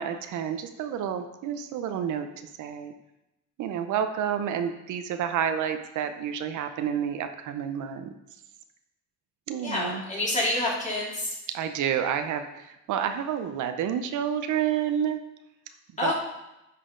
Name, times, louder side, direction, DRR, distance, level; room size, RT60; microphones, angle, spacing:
voice 1, 0.0-2.3 2.6-2.9 3.6-8.1 9.5-10.0 11.5-15.2 16.0-16.1, right 9 dB, 80° right, 8 dB, 0.7 m, -29 dB
voice 2, 9.6-11.3 16.0-16.1, left 2 dB, 25° left, -5 dB, 2.7 m, -27 dB
10.0 x 4.2 x 3.7 m, 0.92 s
cardioid pair, 90°, 30 cm